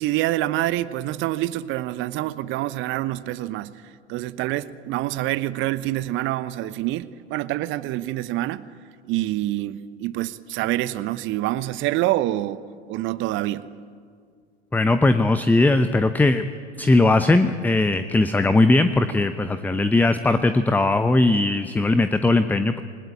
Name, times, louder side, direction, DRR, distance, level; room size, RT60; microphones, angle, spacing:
voice 1, 0.0-3.8 4.1-8.7 9.1-13.7, right 15 dB, 35° right, 0.9 m, -26 dB
voice 2, 14.7-16.5 16.8-22.8, left 2 dB, 5° left, 0.8 m, -19 dB
28.0 x 20.0 x 8.8 m
figure-of-eight pair, 85°, 34 cm